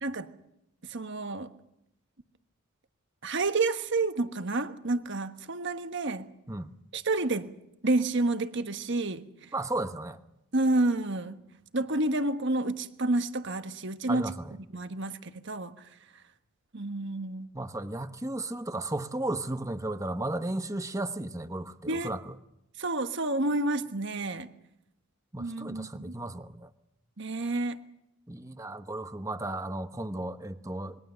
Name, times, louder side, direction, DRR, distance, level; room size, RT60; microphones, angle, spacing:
voice 1, 0.8-1.5 3.2-6.3 6.9-7.5 7.8-9.2 10.5-11.4 11.7-14.2 14.7-15.7 16.7-17.5 21.9-22.1 22.8-24.5 25.4-26.1 27.2-27.8, right 2 dB, 55° right, 1.3 m, -29 dB
voice 2, 9.5-10.2 14.1-14.5 17.5-22.4 25.3-26.7 28.3-31.0, right 2 dB, 15° right, 1.0 m, -34 dB
26.5 x 22.0 x 6.9 m
head